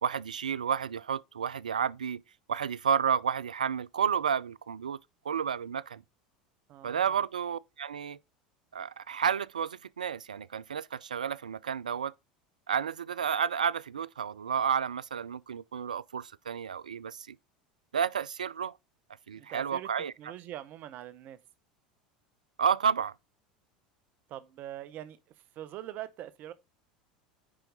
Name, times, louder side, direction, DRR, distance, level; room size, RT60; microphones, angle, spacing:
voice 1, 0.0-2.2 2.5-5.0 5.2-6.0 6.8-8.2 8.7-12.1 12.7-17.4 17.9-18.7 19.3-20.1 22.6-23.1, right 7 dB, 80° right, 0.3 m, -31 dB
voice 2, 6.7-7.2 19.3-19.9 20.2-21.4 24.3-25.2 25.6-26.5, right 12 dB, 45° right, 0.8 m, -43 dB
9.8 x 4.5 x 3.9 m
figure-of-eight pair, 75°, 4 cm